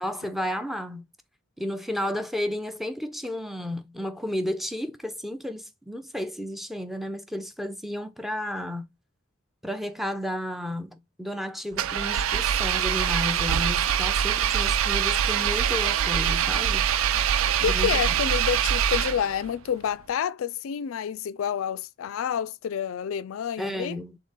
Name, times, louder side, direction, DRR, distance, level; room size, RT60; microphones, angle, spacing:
voice 1, 0.0-1.0 1.6-8.9 9.6-16.8 17.6-17.9 23.6-24.2, left 1 dB, ahead, 0.5 m, -32 dB
Engine, 11.7-19.5, right 9 dB, 80° right, 0.4 m, -24 dB
voice 2, 17.6-24.0, left 8 dB, 85° left, 0.3 m, -29 dB
3.7 x 3.6 x 4.0 m
head